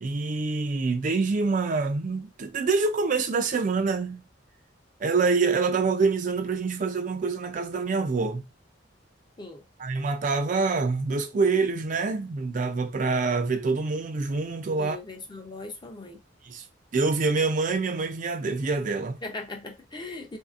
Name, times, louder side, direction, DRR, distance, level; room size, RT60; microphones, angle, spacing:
voice 1, 0.0-4.2 5.0-8.4 9.8-15.0 16.5-16.6 16.9-19.2, right 4 dB, 40° right, 0.4 m, -26 dB
voice 2, 14.8-16.2 19.2-20.4, left 3 dB, 25° left, 0.6 m, -39 dB
4.0 x 2.7 x 2.4 m
head